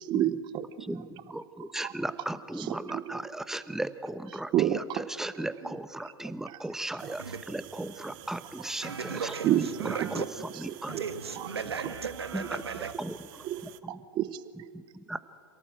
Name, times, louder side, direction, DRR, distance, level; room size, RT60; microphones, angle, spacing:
voice 1, 0.0-0.9 1.8-1.9 2.9-3.2 4.5-5.0 6.5-6.6 7.0-7.1 9.4-10.1 10.9-11.0 11.4-11.5 13.4-14.7, right 12 dB, 35° right, 0.8 m, -30 dB
voice 2, 0.8-11.0 11.3-11.5 12.3-14.0 14.7-15.2, right 1 dB, 5° right, 1.0 m, -37 dB
sound 1, 7.0-13.8, right 17 dB, 55° right, 1.1 m, -50 dB
voice 3, 8.8-10.2 10.9-12.9, right 6 dB, 90° right, 1.5 m, -36 dB
27.5 x 17.5 x 7.8 m
hypercardioid pair, 100°, 13 cm